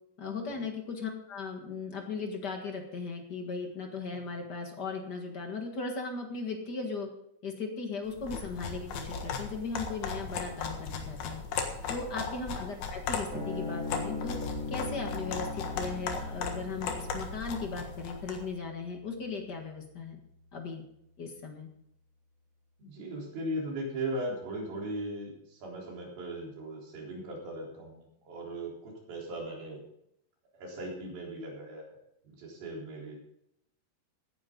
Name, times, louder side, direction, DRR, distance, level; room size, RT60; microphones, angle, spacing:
voice 1, 0.2-7.1 7.4-11.4 11.9-14.4 14.7-20.2 20.5-20.8 21.2-21.7, left 4 dB, 45° left, 3 dB, 1.4 m, -37 dB
sound 1, 8.1-18.5, left 5 dB, 75° left, 3.4 m, -37 dB
sound 2, 13.3-20.0, left 3 dB, 30° right, 5.1 m, -40 dB
voice 2, 22.8-29.8 30.6-32.0 32.2-33.2, right 1 dB, 70° right, -2 dB, 5.6 m, -38 dB
17.0 x 9.9 x 3.9 m, 0.74 s
omnidirectional pair, 4.4 m